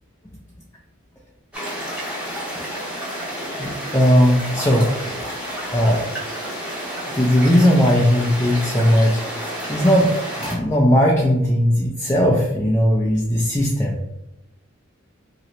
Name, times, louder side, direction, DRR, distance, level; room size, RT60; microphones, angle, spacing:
sound 1, 1.5-10.6, equal, 5° right, 0.7 m, -30 dB
voice 1, 3.6-4.9 5.7-6.0 7.1-10.1 10.4-14.0, equal, 10° left, -3 dB, 0.3 m, -18 dB
2.8 x 2.0 x 4.0 m, 0.92 s
head